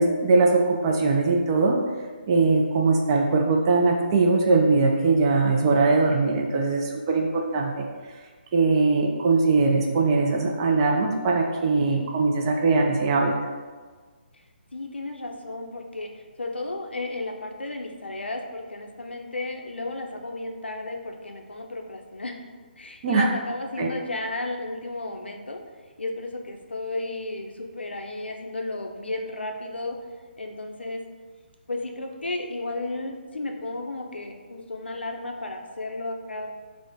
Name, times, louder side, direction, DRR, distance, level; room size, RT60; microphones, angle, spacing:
voice 1, 0.0-1.8 2.3-7.9 8.5-13.4 23.0-23.3 23.8-23.9, right 3 dB, 25° right, 1 dB, 0.3 m, -21 dB
voice 2, 6.0-6.4 11.8-12.2 14.7-16.1 16.4-22.3 22.8-25.6 26.0-30.0 30.4-31.0 31.7-36.5, left 2 dB, 80° left, 3 dB, 0.4 m, -33 dB
4.1 x 2.0 x 2.6 m, 1.5 s
figure-of-eight pair, 145°, 6 cm